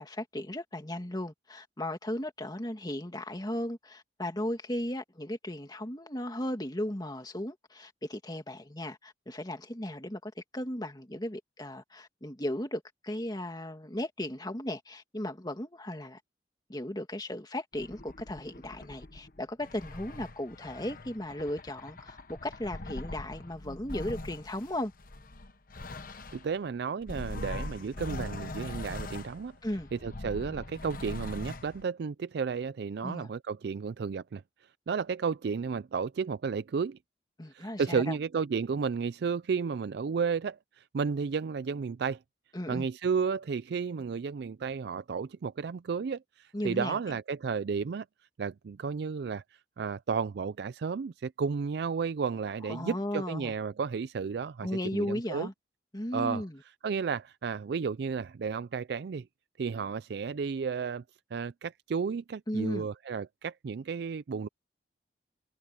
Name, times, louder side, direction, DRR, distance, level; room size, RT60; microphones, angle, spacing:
voice 1, 0.0-16.2 16.7-24.9 29.6-29.9 33.0-33.3 37.4-38.2 42.5-42.9 46.5-47.0 52.7-53.5 54.6-55.5 55.9-56.6 62.5-62.9, left 1 dB, 20° left, 2.1 m, -36 dB
sound 1, 17.7-26.6 27.0-31.8, left 2 dB, 50° left, 1.2 m, -42 dB
voice 2, 26.3-29.5 29.9-34.4 34.9-37.0 37.5-42.2 42.7-48.1 48.4-55.5 56.1-56.4 56.8-59.3 59.6-61.0 61.3-64.5, right 5 dB, 60° right, 0.4 m, -33 dB
head